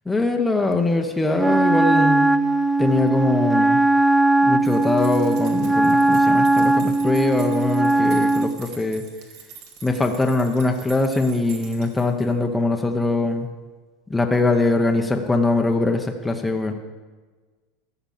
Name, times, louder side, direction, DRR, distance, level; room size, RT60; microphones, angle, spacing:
voice 1, 0.1-2.3 2.8-3.8 4.4-9.0 9.8-13.5 14.1-16.7, left 2 dB, 10° left, 3 dB, 0.9 m, -22 dB
Wind instrument woodwind instrument, 1.4-8.6, right 2 dB, 10° right, 0.3 m, -19 dB
sound 1, 4.6-12.4, right 6 dB, 65° right, 2.3 m, -44 dB
13.0 x 7.0 x 7.2 m, 1.3 s
supercardioid pair, 135°, 0 cm